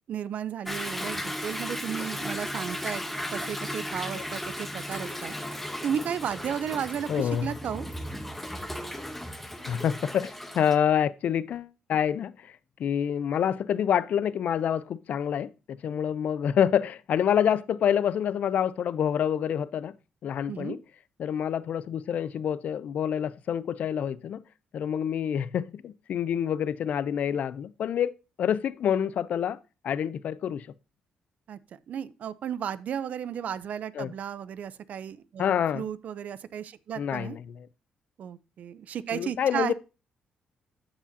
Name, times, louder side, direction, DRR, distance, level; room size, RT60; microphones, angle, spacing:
voice 1, 0.1-3.0 3.3-5.3 5.8-7.9 20.5-20.8 31.5-31.6 31.9-37.4 38.2-39.7, right 8 dB, 60° right, 0.5 m, -34 dB
Toilet flush / Drip / Trickle dribble, 0.7-10.8, left 1 dB, 5° left, 0.8 m, -35 dB
voice 2, 7.1-7.5 9.7-12.5 12.8-19.9 20.2-20.8 21.2-24.4 24.7-28.1 28.4-29.6 29.8-30.7 34.0-34.1 35.4-35.9 37.0-37.7 39.1-39.7, left 9 dB, 60° left, 0.4 m, -27 dB
12.5 x 5.0 x 2.6 m
cardioid pair, 115°, 3 cm